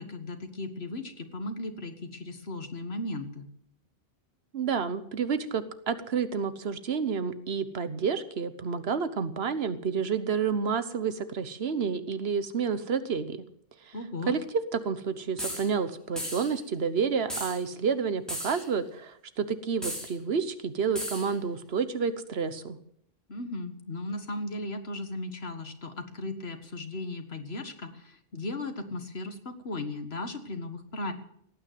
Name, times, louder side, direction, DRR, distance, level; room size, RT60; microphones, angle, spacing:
voice 1, 0.0-3.5 13.9-14.4 23.3-31.1, left 2 dB, 80° left, 7 dB, 2.0 m, -36 dB
voice 2, 4.5-13.4 13.9-14.0 14.3-14.4 14.7-22.8, right 6 dB, 80° right, 12 dB, 1.3 m, -30 dB
sound 1, 15.4-15.7 16.2-16.5 17.3-17.6 18.3-18.7 19.8-20.1 20.9-21.3, equal, ahead, 4.8 m, -35 dB
17.5 x 9.5 x 7.7 m, 0.71 s
omnidirectional pair, 1.0 m